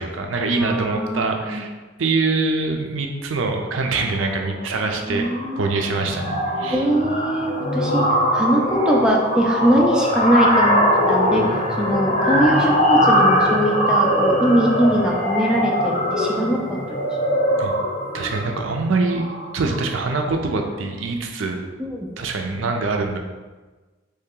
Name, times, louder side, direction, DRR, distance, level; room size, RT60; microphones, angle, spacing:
voice 1, 0.0-1.7 2.0-5.3 5.6-6.8 17.6-17.7 18.1-19.3 19.5-21.6 22.2-23.2, right 3 dB, 75° right, 3 dB, 0.5 m, -24 dB
voice 2, 0.5-1.6 4.9-5.6 6.7-8.0 8.3-11.4 11.8-17.0 21.8-22.1, right 1 dB, 5° right, -2 dB, 0.4 m, -21 dB
sound 1, 4.0-4.3 4.6-4.9 5.1-20.0, equal, 40° left, 0.7 m, -21 dB
3.1 x 2.8 x 3.7 m, 1.3 s
head